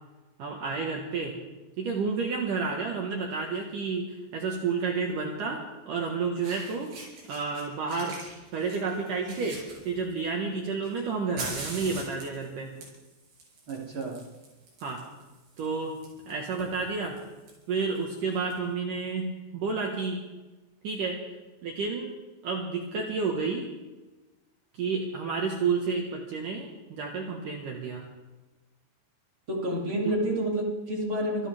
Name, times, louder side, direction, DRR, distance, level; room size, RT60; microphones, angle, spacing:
voice 1, 0.4-1.4 1.8-5.6 5.9-6.9 7.3-8.1 8.5-9.6 9.9-12.7 14.8-15.0 15.6-15.9 16.3-17.2 17.7-19.2 19.5-20.2 20.8-21.2 21.6-22.1 22.4-23.7 24.8-28.1 30.1-30.2, right 4 dB, 60° right, 0 dB, 2.8 m, -30 dB
Fire, 3.4-3.6 5.0-5.1 6.0-6.1 6.4-7.6 7.9-10.3 10.8-18.5, right 3 dB, 80° right, 8.2 m, -43 dB
voice 2, 13.7-14.2 29.5-31.5, right 1 dB, 35° right, -3 dB, 3.1 m, -29 dB
25.5 x 16.0 x 3.6 m, 1.1 s
omnidirectional pair, 4.8 m